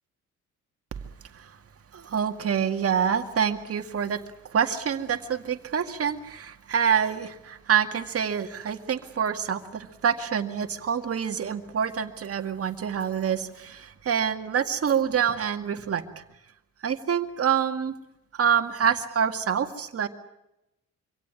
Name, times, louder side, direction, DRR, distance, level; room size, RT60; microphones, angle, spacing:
voice 1, 1.9-16.2 16.8-17.9 18.4-20.1, right 7 dB, 50° right, 7 dB, 2.1 m, -26 dB
25.5 x 17.0 x 9.6 m, 0.90 s
cardioid pair, 90°, 30 cm